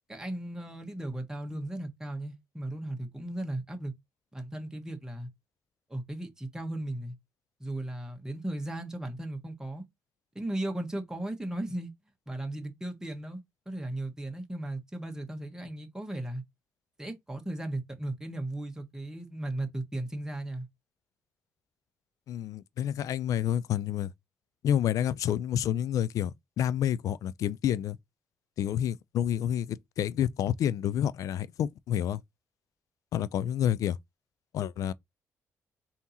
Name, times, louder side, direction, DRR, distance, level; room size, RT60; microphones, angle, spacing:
voice 1, 0.1-3.9 4.3-5.3 5.9-7.1 7.6-9.8 10.3-11.9 12.3-16.4 17.0-20.7, right 1 dB, 10° right, 1.4 m, -36 dB
voice 2, 22.3-24.1 24.6-28.0 28.6-32.2 33.1-34.0 34.5-34.9, left 10 dB, 70° left, 0.4 m, -29 dB
3.6 x 2.8 x 4.1 m
supercardioid pair, 55°, 6 cm